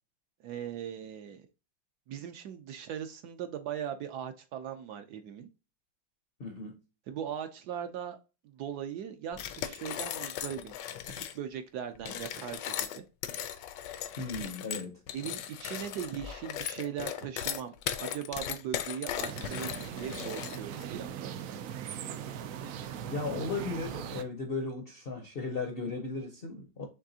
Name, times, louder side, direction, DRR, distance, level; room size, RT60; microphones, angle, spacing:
voice 1, 0.4-1.5 2.1-5.5 7.1-8.2 8.4-10.8 11.0-13.0 15.1-21.4, right 9 dB, 70° right, 1.0 m, -39 dB
voice 2, 6.4-6.8 14.2-15.0 23.1-26.9, left 3 dB, 55° left, 0.6 m, -36 dB
sound 1, 9.3-11.4 12.0-20.8, left 10 dB, 75° left, 1.2 m, -37 dB
sound 2, 19.2-24.2, right 9 dB, 90° right, 0.7 m, -39 dB
5.9 x 3.2 x 2.7 m
omnidirectional pair, 2.0 m